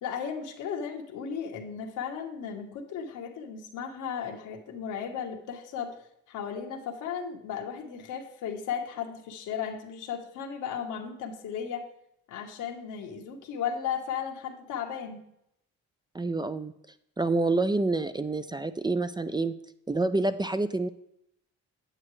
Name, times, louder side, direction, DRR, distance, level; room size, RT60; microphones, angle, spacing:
voice 1, 0.0-11.9 12.3-15.2, left 7 dB, 90° left, 2 dB, 1.3 m, -35 dB
voice 2, 16.1-16.7 17.2-19.5 19.9-20.9, right 2 dB, 15° right, 11 dB, 0.4 m, -27 dB
8.9 x 8.6 x 3.2 m, 0.77 s
cardioid pair, 90°, 30 cm